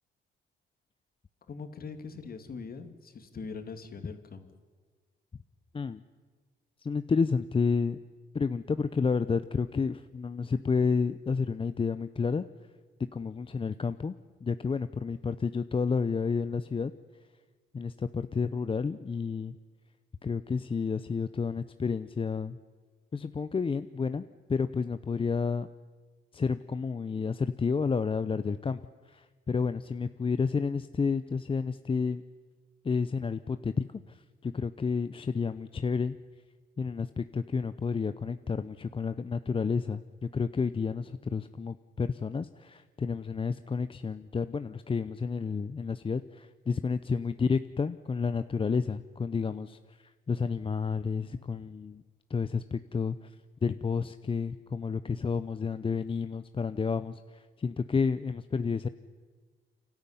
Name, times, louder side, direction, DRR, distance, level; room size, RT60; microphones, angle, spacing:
voice 1, 1.5-4.5, left 4 dB, 50° left, 8 dB, 2.5 m, -42 dB
voice 2, 6.8-8.0 8.3-12.5 13.1-14.1 14.4-16.9 17.7-19.6 20.2-22.6 23.1-25.7 26.3-28.8 29.1-32.2 32.8-36.2 36.8-52.0 52.3-53.3 53.6-58.9, left 5 dB, 25° left, 12 dB, 0.6 m, -30 dB
29.0 x 13.0 x 9.9 m, 1.5 s
cardioid pair, 90°, 20 cm